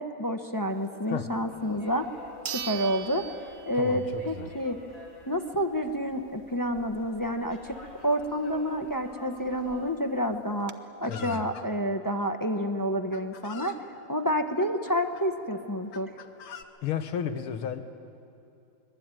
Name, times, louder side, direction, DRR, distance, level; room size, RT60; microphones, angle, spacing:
voice 1, 0.0-2.1 2.5-3.3 3.7-4.8 5.3-10.7 11.0-16.1, equal, 20° left, 6 dB, 0.5 m, -29 dB
sound 1, 1.5-9.9, left 2 dB, 40° left, 3.8 m, -50 dB
sound 2, 1.6-1.7 2.4-4.2 4.6-4.7 9.3-9.4 9.6-9.7 10.3-10.7, right 9 dB, 70° right, 0.6 m, -39 dB
voice 2, 3.7-4.6 11.1-11.4 16.8-17.8, left 8 dB, 80° left, 9 dB, 2.1 m, -33 dB
Chicken rooster, 11.0-11.7 12.6-12.7 13.1-13.8 14.6-15.2 15.9-16.6, left 6 dB, 55° left, 1.6 m, -45 dB
24.5 x 22.0 x 9.2 m, 2.7 s
omnidirectional pair, 2.3 m